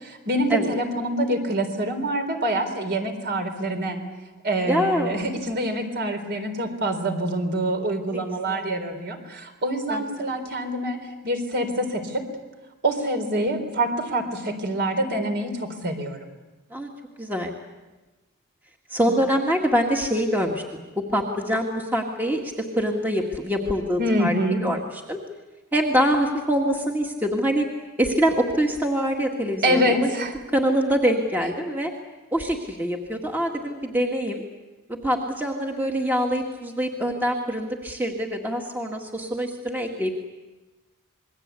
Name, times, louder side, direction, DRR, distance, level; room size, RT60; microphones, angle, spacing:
voice 1, 0.0-4.0 4.4-12.3 12.8-16.2 19.0-19.1 24.0-24.6 29.6-30.3, right 1 dB, 50° right, 5 dB, 3.9 m, -26 dB
voice 2, 4.7-5.1 8.1-8.6 9.9-10.0 13.3-13.4 16.7-16.9 17.2-17.5 18.9-20.6 21.0-24.8 25.1-25.2 25.7-27.7 28.0-30.3 30.5-31.9 32.3-34.4 34.9-40.1, equal, 10° right, 1 dB, 1.9 m, -24 dB
27.5 x 22.0 x 8.3 m, 1.2 s
head